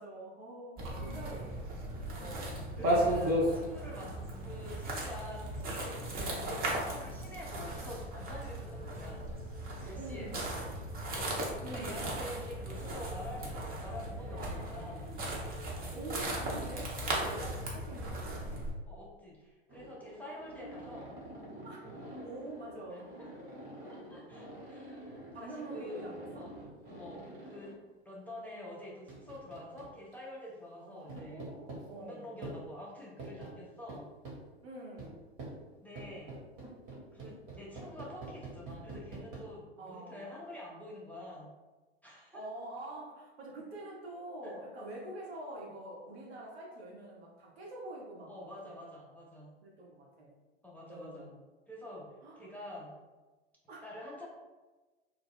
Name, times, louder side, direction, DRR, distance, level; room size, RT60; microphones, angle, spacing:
voice 1, 0.0-3.2 10.0-10.6 11.6-12.2 14.6-14.7 15.9-18.6 20.2-20.4 21.6-21.8 22.2-23.1 25.3-26.5 30.8-32.4 34.6-35.4 39.8-40.4 42.3-48.8 49.6-50.3 50.9-51.3 52.2-52.5 53.7-53.8, right 1 dB, 75° right, -3 dB, 1.0 m, -46 dB
sound 1, 0.8-18.7, right 1 dB, 30° right, 0.7 m, -36 dB
voice 2, 2.8-9.3 9.8-10.7 11.6-15.1 18.9-21.2 22.9-23.0 23.9-25.0 25.4-26.7 26.9-27.7 28.0-31.4 32.0-34.1 35.8-36.4 37.1-41.5 42.0-42.4 44.4-44.5 48.3-49.5 50.6-51.3 51.7-52.9 53.8-54.3, left 1 dB, 5° left, -5 dB, 0.4 m, -47 dB
sound 2, 8.3-15.7, right 3 dB, 90° left, 0.5 m, -53 dB
sound 3, 19.7-27.7 29.1-30.1 31.1-31.8 32.4-32.6 33.2-33.5 33.9-34.4 35.0-35.1 35.4-35.5 36.0-39.4, right 2 dB, 50° right, 1.1 m, -46 dB
2.3 x 2.1 x 3.5 m, 1.2 s
hypercardioid pair, 90°, 32 cm